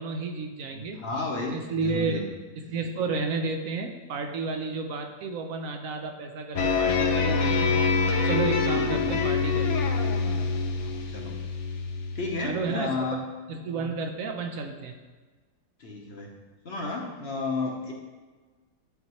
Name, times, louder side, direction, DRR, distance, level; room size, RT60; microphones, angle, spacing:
voice 1, 0.0-1.0 1.5-2.3 2.6-7.8 8.2-9.7 12.4-13.1 13.5-14.9, right 4 dB, 70° right, 5 dB, 0.9 m, -31 dB
voice 2, 0.7-2.3 8.7-9.5 10.8-11.4 12.1-13.2 15.8-16.3 16.6-17.9, left 3 dB, 50° left, 0 dB, 1.0 m, -33 dB
sound 1, 6.5-12.8, left 4 dB, 65° left, 0.8 m, -26 dB
10.5 x 4.3 x 3.0 m, 1.4 s
omnidirectional pair, 1.6 m